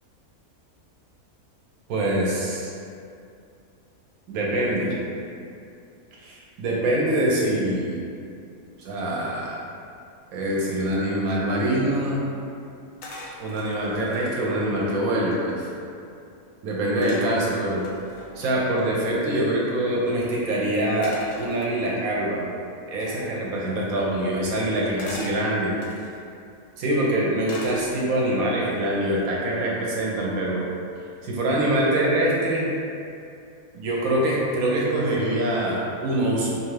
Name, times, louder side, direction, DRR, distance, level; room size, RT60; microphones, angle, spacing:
voice 1, 1.9-2.7 4.3-4.9 6.2-8.0 8.8-9.6 10.3-12.3 13.4-15.7 16.6-17.8 18.4-22.5 22.9-25.7 26.8-30.6 31.2-32.7 33.7-36.6, right 1 dB, 75° right, -4 dB, 1.0 m, -24 dB
sound 1, 13.0-14.3 14.9-15.0 15.2-15.8 17.0-18.6 21.0-22.1 23.0-23.3 25.0-26.2 27.5-28.3 28.7-29.1, left 2 dB, 85° left, 1.1 m, -41 dB
2.6 x 2.4 x 3.1 m, 2.5 s
omnidirectional pair, 1.6 m